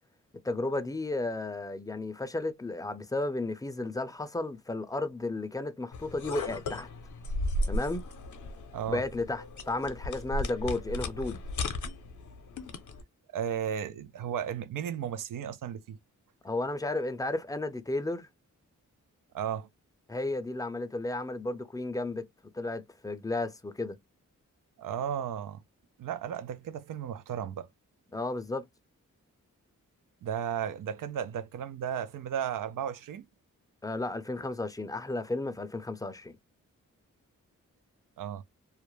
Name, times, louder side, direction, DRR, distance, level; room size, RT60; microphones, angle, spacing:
voice 1, 0.4-6.9 7.7-8.1 8.9-11.4 16.4-18.3 20.1-22.3 22.5-24.0 28.1-28.6 33.8-36.4, left 2 dB, 10° left, 0.4 m, -33 dB
sound 1, 5.9-13.0, left 1 dB, 70° left, 0.6 m, -35 dB
voice 2, 13.3-16.0 19.3-19.7 24.8-25.6 26.0-27.7 30.2-33.3 38.2-38.4, right 9 dB, 90° right, 0.5 m, -34 dB
2.4 x 2.0 x 3.0 m
wide cardioid pair, 95°, 31 cm